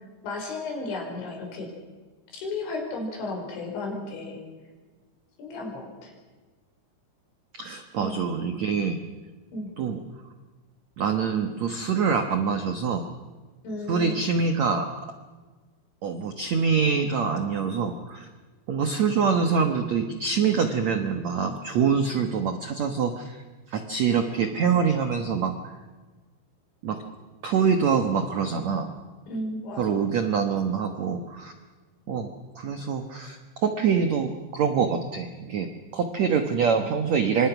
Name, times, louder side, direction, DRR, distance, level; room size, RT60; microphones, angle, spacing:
voice 1, 0.2-1.7 2.3-4.4 5.4-6.1 8.0-8.3 9.5-9.8 13.6-14.2 29.3-30.1, left 2 dB, 85° left, 1 dB, 7.6 m, -34 dB
voice 2, 7.5-9.0 9.8-10.0 11.0-13.0 13.9-14.9 16.0-18.3 18.7-23.4 23.7-25.7 26.8-27.0 27.4-28.9 29.8-31.5 32.1-37.5, right 6 dB, 75° right, 6 dB, 1.6 m, -25 dB
28.0 x 25.5 x 6.1 m, 1.3 s
omnidirectional pair, 5.2 m